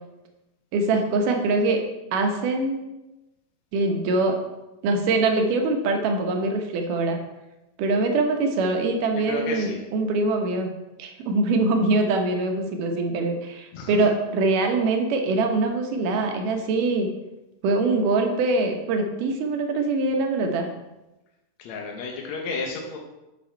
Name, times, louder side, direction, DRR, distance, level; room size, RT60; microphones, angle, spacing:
voice 1, 0.7-1.8 2.1-2.8 3.7-4.4 4.8-7.2 7.8-10.7 11.0-17.1 17.6-20.7, right 3 dB, 70° right, 3 dB, 2.4 m, -23 dB
voice 2, 9.3-9.8 13.7-13.9 21.6-23.0, left 4 dB, 70° left, 0 dB, 1.8 m, -32 dB
8.6 x 6.1 x 4.5 m, 1.0 s
omnidirectional pair, 4.2 m